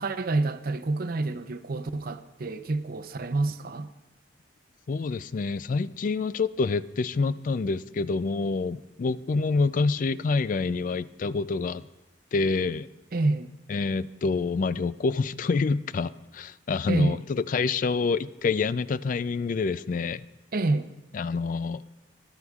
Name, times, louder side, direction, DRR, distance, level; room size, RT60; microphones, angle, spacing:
voice 1, 0.0-3.9 13.1-13.5 16.9-17.2 20.5-20.9, right 2 dB, 50° right, 0.6 m, -28 dB
voice 2, 4.9-11.8 12.3-12.9 13.7-20.2 21.1-21.8, left 4 dB, 45° left, 0.3 m, -27 dB
21.5 x 12.5 x 2.4 m
head